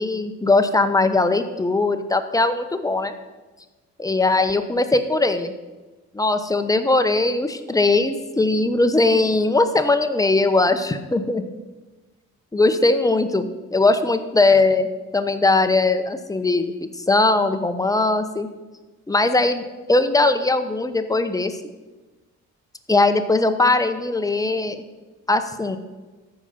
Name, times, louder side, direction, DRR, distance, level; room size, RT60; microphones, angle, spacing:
voice 1, 0.0-3.1 4.0-5.5 6.1-11.4 12.5-14.9 15.1-16.7 17.1-18.5 19.1-21.6 22.9-24.8 25.3-25.8, left 2 dB, 10° left, 9 dB, 0.9 m, -20 dB
13.5 x 5.1 x 5.7 m, 1.2 s
cardioid pair, 90°, 30 cm